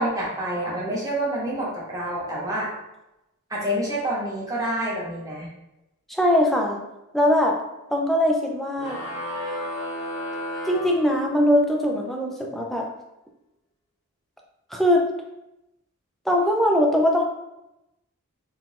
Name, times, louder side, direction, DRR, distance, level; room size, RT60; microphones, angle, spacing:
voice 1, 0.0-2.7 3.5-5.5, right 1 dB, 15° right, -6 dB, 1.2 m, -27 dB
voice 2, 6.1-6.8 7.1-7.6 7.9-9.0 10.7-12.9 14.7-15.1 16.3-17.2, left 1 dB, ahead, 0 dB, 0.5 m, -21 dB
sound 1, 8.8-11.7, left 1 dB, 55° left, 1.2 m, -33 dB
4.4 x 3.7 x 2.5 m, 0.91 s
head